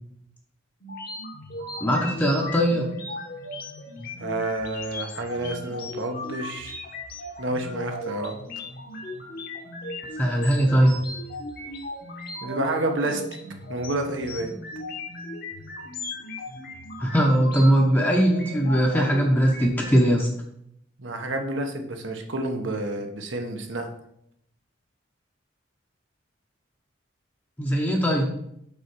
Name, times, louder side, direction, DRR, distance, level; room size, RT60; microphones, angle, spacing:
sound 1, 0.8-20.0, left 1 dB, 50° left, 1.2 m, -37 dB
voice 1, 1.8-2.9 10.2-11.0 17.0-20.3 27.6-28.3, equal, 10° left, -1 dB, 0.8 m, -20 dB
voice 2, 4.2-6.7 7.4-8.4 12.4-13.2 13.7-14.5 21.0-23.9, right 2 dB, 75° right, 4 dB, 1.0 m, -29 dB
5.5 x 4.2 x 6.1 m, 0.75 s
head